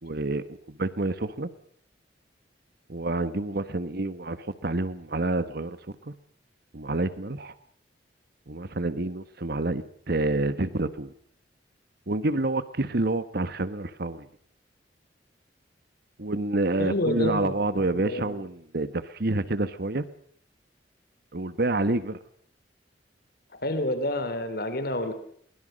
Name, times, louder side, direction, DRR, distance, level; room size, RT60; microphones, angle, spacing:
voice 1, 0.0-1.5 2.9-5.8 6.0-6.1 6.7-7.5 8.5-11.1 12.1-14.3 16.2-20.1 21.3-22.2, right 2 dB, 60° right, 13 dB, 1.3 m, -28 dB
voice 2, 16.8-18.3 23.6-25.1, left 1 dB, 60° left, 10 dB, 3.1 m, -29 dB
23.0 x 21.5 x 6.4 m, 0.62 s
head